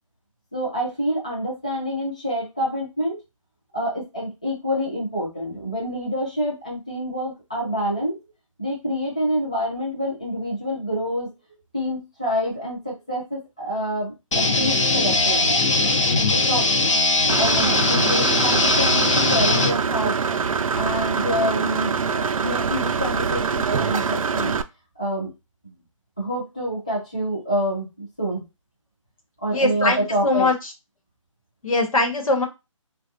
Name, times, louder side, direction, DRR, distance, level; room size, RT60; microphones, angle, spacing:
voice 1, 0.5-3.2 3.7-8.2 8.6-11.3 11.7-15.6 16.3-16.7 17.4-20.2 20.7-24.5 25.0-25.3 25.6-25.7 26.2-28.4 29.4-30.5, equal, 10° left, -7 dB, 0.4 m, -27 dB
sound 1, 14.3-19.7, left 2 dB, 65° left, 0.7 m, -20 dB
Engine / Mechanisms, 17.3-24.6, right 6 dB, 80° right, 0.4 m, -24 dB
voice 2, 29.5-30.7 31.6-32.4, left 2 dB, 90° left, 3 dB, 1.1 m, -21 dB
3.5 x 2.3 x 2.6 m, 0.25 s
hypercardioid pair, 180°, 17 cm